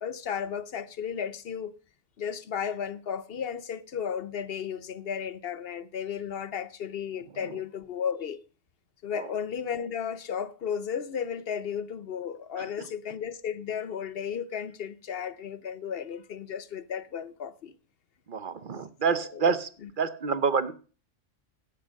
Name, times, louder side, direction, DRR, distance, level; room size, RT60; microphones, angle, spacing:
voice 1, 0.0-1.7 2.2-8.4 9.0-17.7 19.4-19.5 19.8-19.9, left 7 dB, 55° left, 0.9 m, -34 dB
voice 2, 12.6-12.9 18.3-19.7 20.0-20.7, right 5 dB, 45° right, 0.9 m, -28 dB
11.5 x 8.3 x 6.4 m
omnidirectional pair, 1.3 m